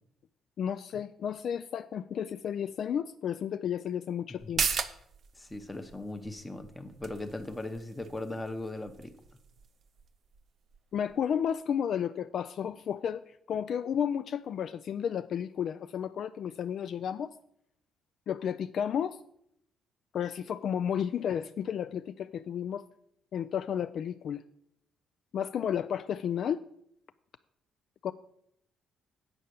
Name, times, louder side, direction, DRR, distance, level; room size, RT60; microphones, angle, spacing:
voice 1, 0.6-4.6 10.9-17.3 18.3-19.2 20.1-22.8 23.3-24.4 25.3-26.7 28.0-28.1, left 8 dB, 50° left, 11 dB, 0.3 m, -32 dB
sound 1, 4.4-11.5 11.9-12.0, right 6 dB, 45° right, 0.6 m, -39 dB
voice 2, 5.4-9.1, left 2 dB, 10° left, 7 dB, 0.8 m, -38 dB
8.8 x 5.6 x 8.0 m, 0.73 s
cardioid pair, 170°, 0 cm